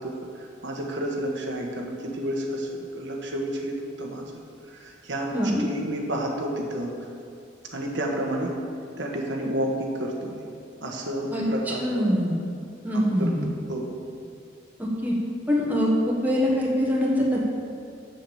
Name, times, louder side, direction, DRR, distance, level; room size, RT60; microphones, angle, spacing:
voice 1, 0.0-4.4 4.7-7.0 7.7-8.5 9.0-10.4 10.8-12.1 12.9-13.3 13.7-13.9, right 1 dB, 70° right, 0 dB, 1.3 m, -30 dB
voice 2, 5.3-5.6 11.3-11.4 11.8-12.3 12.8-13.5 14.8-15.2 15.5-17.4, equal, 10° right, -4 dB, 1.4 m, -23 dB
7.5 x 7.0 x 7.1 m, 2.5 s
head